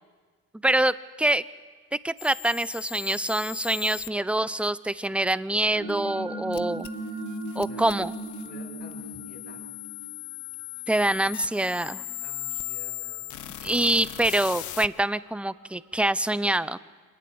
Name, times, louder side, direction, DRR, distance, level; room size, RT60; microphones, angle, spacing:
voice 1, 0.6-1.4 2.0-6.9 7.6-8.1 10.9-12.0 13.6-16.8, right 1 dB, 5° right, 16 dB, 0.7 m, -25 dB
sound 1, 2.2-4.1 6.5-14.9, left 15 dB, 75° left, 0.9 m, -38 dB
sound 2, 5.7-15.8, right 2 dB, 80° right, 6.2 m, -40 dB
voice 2, 8.4-9.6 12.2-13.3, left 3 dB, 50° left, -1 dB, 7.9 m, -50 dB
25.0 x 19.0 x 7.9 m, 1.5 s
cardioid pair, 90°, 30 cm